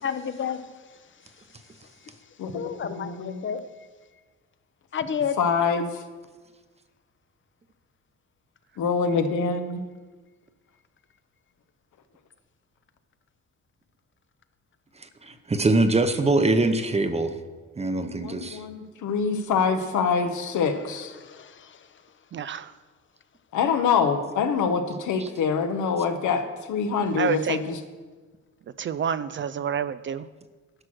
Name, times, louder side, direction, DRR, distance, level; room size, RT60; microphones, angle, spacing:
voice 1, 0.0-0.7 2.0-2.2 2.5-3.6 4.9-5.4 21.2-21.9, left 7 dB, 40° left, 11 dB, 0.8 m, -31 dB
voice 2, 2.4-3.4 5.4-5.9 8.8-9.8 18.2-21.1 23.5-27.8, left 5 dB, 75° left, 7 dB, 1.1 m, -25 dB
voice 3, 15.2-17.4 17.8-18.6, right 2 dB, 20° right, 9 dB, 0.8 m, -23 dB
voice 4, 22.3-22.7 27.2-27.6 28.8-30.2, right 8 dB, 40° right, 13 dB, 0.4 m, -28 dB
11.5 x 6.0 x 6.2 m, 1.3 s
cardioid pair, 90°, 30 cm